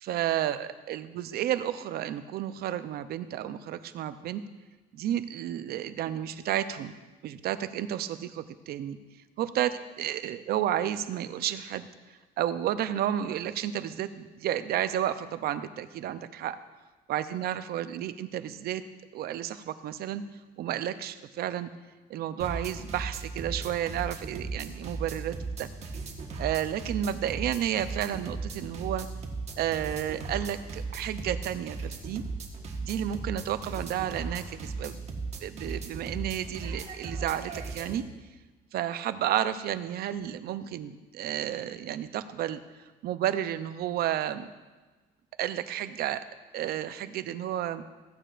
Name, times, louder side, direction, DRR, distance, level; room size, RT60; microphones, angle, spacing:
voice 1, 0.0-4.4 4.9-7.0 7.2-9.0 9.4-11.9 12.4-16.6 17.1-18.8 19.1-20.2 20.6-21.7 22.1-25.7 26.4-29.1 29.6-32.2 32.8-35.0 35.4-38.0 38.7-42.6 43.0-44.5 45.4-46.3 46.5-47.8, right 11 dB, 65° right, 12 dB, 0.6 m, -31 dB
sound 1, 22.4-38.0, right 3 dB, 40° right, 1.5 m, -37 dB
15.5 x 8.9 x 2.5 m, 1.2 s
cardioid pair, 110°, 17 cm